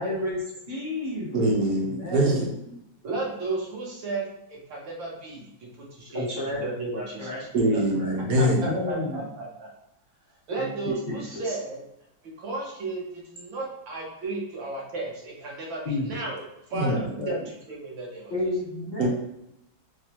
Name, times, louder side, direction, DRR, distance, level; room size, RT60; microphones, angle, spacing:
voice 1, 0.0-1.4 1.9-2.5 6.1-6.7 6.9-7.4 8.0-9.3 10.6-10.7 11.1-11.6 15.8-16.1 16.9-17.4 18.3-19.1, left 2 dB, 50° left, 0.5 m, -31 dB
voice 2, 1.3-2.5 7.5-8.6 16.7-17.0 19.0-19.1, right 1 dB, 65° right, 1.0 m, -23 dB
voice 3, 3.0-5.5 5.8-7.3 8.4-9.7 10.5-11.8 12.2-16.4 16.7-18.3, right 3 dB, 80° right, 1.7 m, -34 dB
4.7 x 2.0 x 2.9 m
omnidirectional pair, 2.0 m